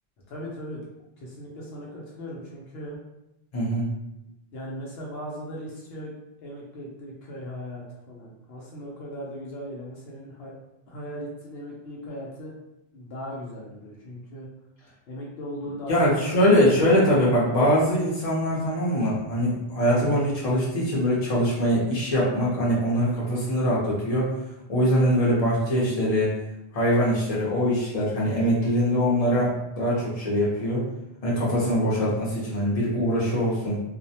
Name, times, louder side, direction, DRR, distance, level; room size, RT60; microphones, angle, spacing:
voice 1, 0.3-0.8 1.2-3.0 4.5-10.5 10.9-12.5 12.9-14.5 15.1-16.9, equal, 75° left, -4 dB, 0.8 m, -38 dB
voice 2, 3.5-3.9 15.9-24.3 24.7-26.3 26.7-30.8 31.2-33.8, equal, 40° left, -7 dB, 0.8 m, -23 dB
2.4 x 2.0 x 2.7 m, 0.90 s
omnidirectional pair, 1.1 m